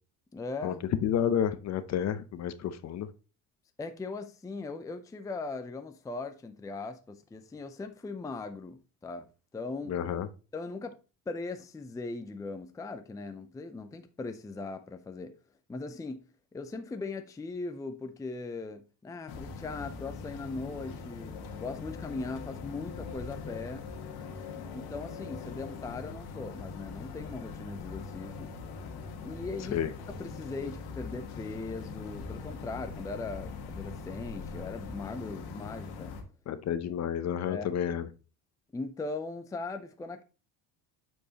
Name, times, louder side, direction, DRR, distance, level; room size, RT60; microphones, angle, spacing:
voice 1, 0.3-0.8 3.8-9.3 9.5-10.0 10.5-11.0 11.3-15.3 15.7-16.3 16.5-23.9 24.5-28.5 29.2-29.8 30.2-36.1 37.4-37.7 38.7-40.2, left 3 dB, 10° left, 0.5 m, -39 dB
voice 2, 1.0-3.1 9.9-10.3 29.7-29.9 36.5-38.1, left 9 dB, 45° left, 0.7 m, -30 dB
sound 1, 19.3-36.2, left 5 dB, 80° left, 1.5 m, -42 dB
8.1 x 4.6 x 2.9 m
cardioid pair, 120°, 38 cm